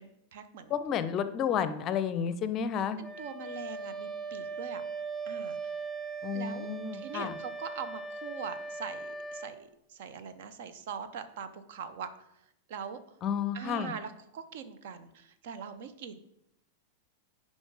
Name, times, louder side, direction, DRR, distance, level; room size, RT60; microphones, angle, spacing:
voice 1, 0.0-1.0 3.0-4.8 5.3-5.7 6.3-12.1 12.7-13.0 13.5-16.2, right 6 dB, 55° right, 11 dB, 0.7 m, -42 dB
voice 2, 0.7-3.0 6.2-7.3 13.2-13.9, left 8 dB, 30° left, 12 dB, 0.5 m, -31 dB
Wind instrument woodwind instrument, 3.0-9.6, right 4 dB, 15° right, 1.7 m, -39 dB
11.0 x 5.2 x 3.7 m, 0.82 s
figure-of-eight pair, 90°, 0 cm